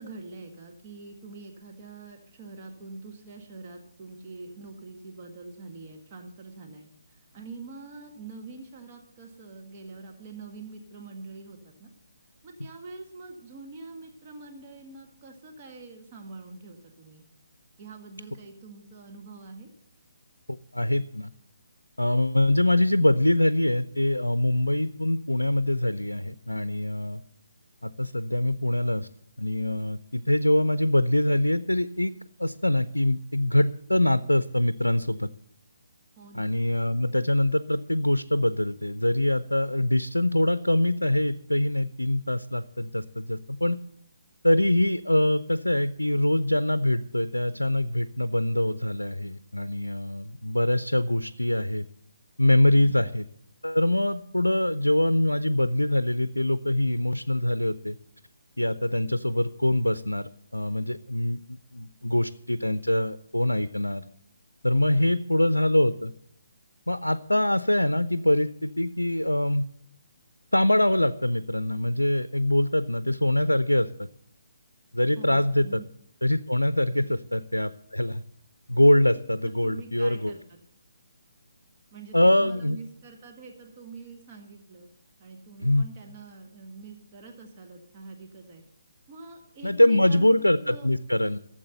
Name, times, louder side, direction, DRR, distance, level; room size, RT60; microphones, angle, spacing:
voice 1, 0.0-11.9 12.4-17.2 17.8-19.7 36.2-36.6 52.7-53.1 64.9-65.3 75.2-75.9 79.4-80.4 81.9-84.9 85.2-88.6 89.1-90.4 90.6-90.9, right 3 dB, 30° right, 2 dB, 1.6 m, -45 dB
voice 2, 20.5-21.3 22.0-27.2 27.8-29.1 29.4-32.1 32.4-35.3 36.3-43.8 44.4-51.9 52.4-53.2 53.6-58.0 58.6-64.0 64.6-66.1 66.9-69.6 70.5-74.1 74.9-75.8 76.2-78.2 78.7-80.3 82.1-82.8 85.6-85.8 89.6-91.4, left 1 dB, 90° left, 14 dB, 0.5 m, -24 dB
12.5 x 7.4 x 7.8 m, 0.69 s
figure-of-eight pair, 140°, 0 cm